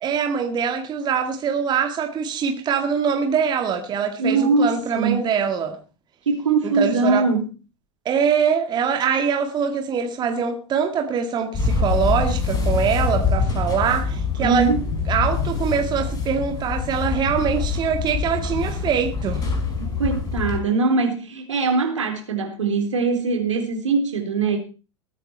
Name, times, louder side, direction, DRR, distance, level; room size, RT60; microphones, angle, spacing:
voice 1, 0.0-5.8 6.6-7.2 8.1-14.7 15.1-19.4, right 7 dB, 25° right, 2.0 m, -23 dB
voice 2, 4.2-5.3 6.3-7.4 14.4-14.8 19.9-24.6, right 4 dB, 70° right, 3.7 m, -21 dB
sound 1, 11.5-20.6, left 4 dB, 25° left, 4.9 m, -25 dB
20.5 x 9.1 x 4.5 m
figure-of-eight pair, 90°, 16 cm